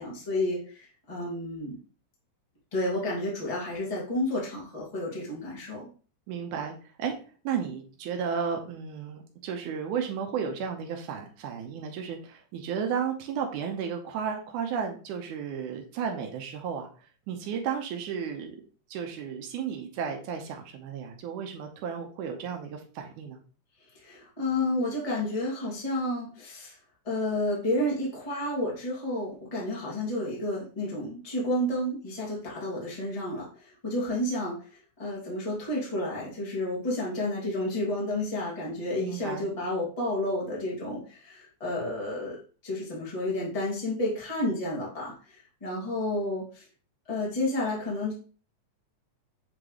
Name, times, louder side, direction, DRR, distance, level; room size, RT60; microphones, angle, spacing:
voice 1, 0.0-1.7 2.7-5.9 23.9-26.8 27.0-34.6 35.0-46.6 47.1-48.1, left 1 dB, 15° left, -5 dB, 1.7 m, -31 dB
voice 2, 6.3-7.1 7.4-16.9 17.3-18.6 18.9-23.4 39.0-39.5, right 7 dB, 90° right, 3 dB, 2.3 m, -33 dB
7.7 x 3.9 x 3.1 m, 0.39 s
omnidirectional pair, 3.5 m